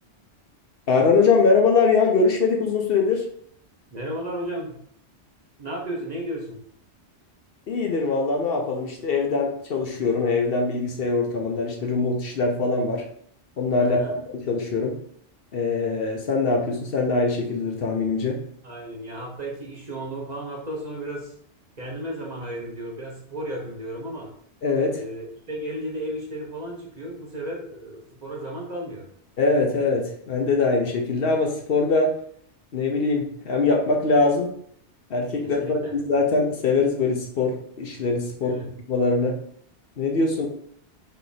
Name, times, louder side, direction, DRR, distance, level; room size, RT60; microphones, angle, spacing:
voice 1, 0.9-3.3 7.7-13.0 13.6-14.2 14.5-15.0 15.5-18.4 24.6-25.0 29.4-32.2 32.7-34.5 35.1-38.6 38.9-39.4 40.0-40.5, left 4 dB, 60° left, 1 dB, 0.9 m, -22 dB
voice 2, 3.9-4.8 5.6-6.6 13.8-14.2 18.6-21.3 21.8-24.3 24.9-29.1 35.4-35.9 38.4-38.6, right 1 dB, 40° right, -2 dB, 0.9 m, -34 dB
3.5 x 3.3 x 4.0 m, 0.63 s
omnidirectional pair, 1.2 m